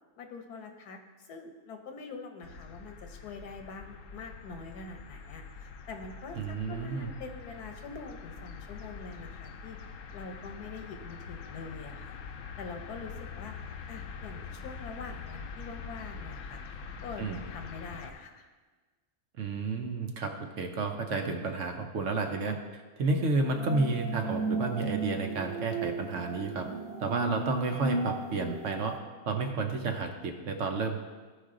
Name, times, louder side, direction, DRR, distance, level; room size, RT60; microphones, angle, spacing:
voice 1, 0.2-9.8 10.1-12.2 12.6-13.5 13.9-16.6 17.0-18.5, left 4 dB, 85° left, 5 dB, 1.4 m, -44 dB
sound 1, 2.4-18.1, left 5 dB, 65° left, 0.9 m, -44 dB
voice 2, 6.4-7.1 17.2-17.4 19.4-22.6 23.0-26.7 27.0-28.9 29.3-31.0, right 3 dB, 60° right, 4 dB, 1.0 m, -31 dB
sound 2, 23.5-29.0, right 4 dB, 80° right, 1.5 m, -35 dB
14.0 x 4.9 x 3.7 m, 1.3 s
omnidirectional pair, 1.6 m